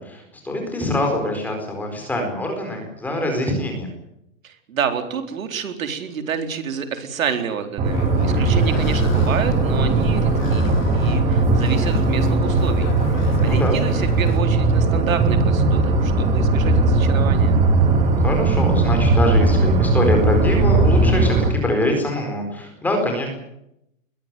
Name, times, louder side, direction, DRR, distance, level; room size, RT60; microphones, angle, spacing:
voice 1, 0.0-3.9 8.3-8.8 13.3-13.8 18.2-23.3, left 1 dB, 5° left, 3 dB, 4.5 m, -24 dB
voice 2, 4.4-12.9 13.4-17.6, right 7 dB, 80° right, 6 dB, 4.2 m, -29 dB
sound 1, 7.8-21.5, right 3 dB, 15° right, 2.9 m, -18 dB
sound 2, 7.9-14.4, left 8 dB, 35° left, 2.4 m, -31 dB
21.0 x 16.5 x 9.3 m, 0.79 s
hypercardioid pair, 175°, 40 cm